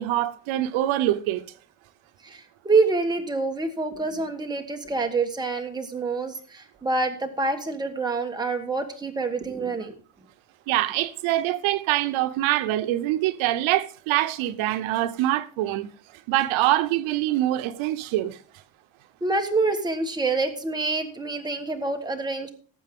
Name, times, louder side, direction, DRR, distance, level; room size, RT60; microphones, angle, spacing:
voice 1, 0.0-1.4 10.7-15.9 16.3-18.4, right 14 dB, 85° right, 0.9 m, -24 dB
voice 2, 2.2-9.9 19.2-22.5, right 3 dB, 10° right, 1.3 m, -26 dB
18.5 x 7.5 x 3.7 m
cardioid pair, 170°, 46 cm